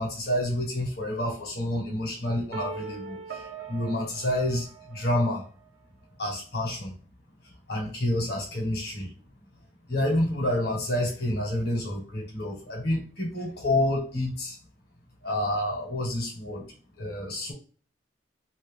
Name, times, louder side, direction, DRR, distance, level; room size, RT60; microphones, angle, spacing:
voice 1, 0.0-5.4 6.2-6.9 7.7-9.1 9.9-14.6 15.2-16.6 17.0-17.5, left 1 dB, 60° left, 0 dB, 1.5 m, -28 dB
sound 1, 2.5-5.5, right 5 dB, 65° right, 0.6 m, -41 dB
2.9 x 2.7 x 3.5 m, 0.40 s
head